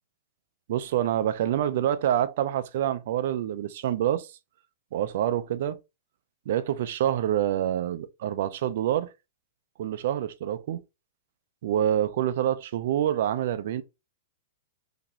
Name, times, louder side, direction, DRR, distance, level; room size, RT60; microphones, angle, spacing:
voice 1, 0.7-4.3 4.9-5.8 6.5-9.1 9.8-10.8 11.6-13.8, right 11 dB, 50° right, 0.4 m, -26 dB
2.9 x 2.9 x 3.8 m
supercardioid pair, 170°, 0 cm